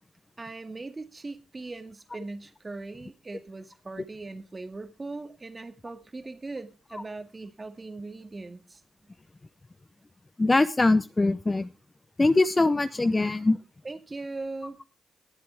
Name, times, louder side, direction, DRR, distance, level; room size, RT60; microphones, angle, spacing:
voice 1, 0.4-8.8 13.8-14.8, right 3 dB, 25° right, 8 dB, 1.9 m, -39 dB
voice 2, 10.4-11.7 12.2-13.6, left 2 dB, 20° left, 13 dB, 0.6 m, -22 dB
20.5 x 7.8 x 3.4 m, 0.29 s
cardioid pair, 90°, 0 cm